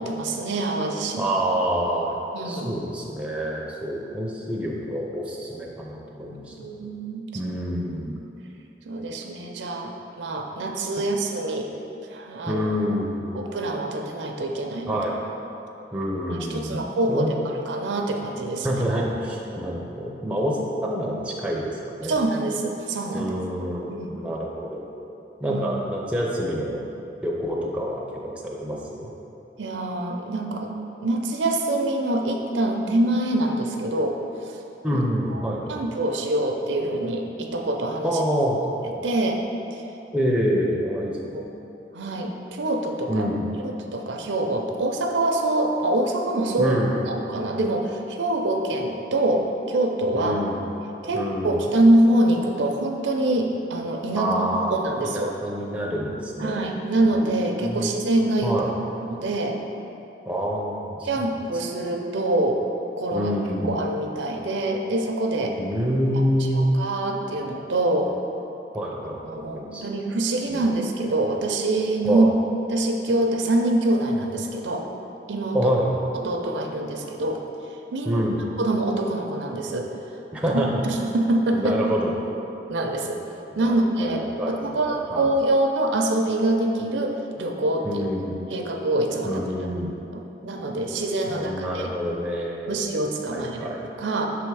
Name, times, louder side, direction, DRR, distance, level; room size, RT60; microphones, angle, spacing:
voice 1, 0.0-1.3 2.3-2.8 6.5-7.2 8.9-9.9 10.2-11.7 12.1-12.6 13.3-15.0 16.3-17.3 17.6-18.8 22.1-23.3 23.9-24.2 25.5-25.6 29.6-30.7 31.0-34.2 34.9-35.0 35.3-35.4 35.7-38.2 39.0-39.4 41.3-41.4 41.9-43.3 43.6-46.8 47.1-50.4 51.0-55.4 56.4-58.6 59.1-59.6 61.1-62.6 63.0-63.3 63.6-65.6 66.5-68.1 69.3-72.3 72.7-74.9 75.3-75.7 76.1-77.4 77.9-78.2 78.6-79.9 80.5-81.8 82.7-83.2 83.6-88.0 88.5-89.7 90.1-91.9 92.7-94.3, right 1 dB, 85° right, 2 dB, 0.5 m, -25 dB
voice 2, 1.2-2.2 2.4-6.5 7.3-8.2 12.5-13.3 14.9-15.2 15.9-17.4 18.6-22.2 23.1-24.9 25.4-26.8 27.2-29.1 34.8-35.8 38.0-38.6 40.1-41.4 43.1-43.5 46.6-47.0 50.1-50.6 51.1-51.6 54.2-54.7 55.0-56.7 57.6-57.9 58.4-58.7 60.3-61.3 63.1-63.8 65.6-66.8 68.7-69.8 70.5-70.7 72.0-72.3 75.5-76.0 78.0-78.4 80.3-80.8 81.5-82.1 83.5-84.8 85.1-85.3 87.8-88.4 89.2-89.9 91.3-92.9 93.3-93.9, equal, 5° right, -3 dB, 0.5 m, -27 dB
6.0 x 3.5 x 4.7 m, 2.9 s
head